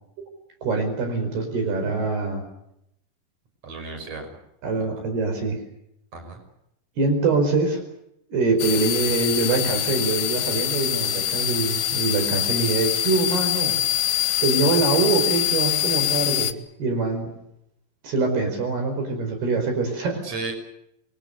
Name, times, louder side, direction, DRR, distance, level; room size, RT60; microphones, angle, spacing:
voice 1, 0.6-2.4 4.6-5.6 7.0-7.8 8.3-13.8 14.4-16.5 16.8-17.3 18.0-20.2, right 3 dB, 65° right, 6 dB, 6.8 m, -24 dB
voice 2, 3.6-4.3 4.8-4.9 6.1-6.4 20.2-20.5, right 3 dB, 35° right, 6 dB, 6.8 m, -34 dB
sound 1, 8.6-16.5, left 12 dB, 65° left, 2.8 m, -24 dB
28.5 x 23.5 x 6.7 m, 0.80 s
omnidirectional pair, 5.0 m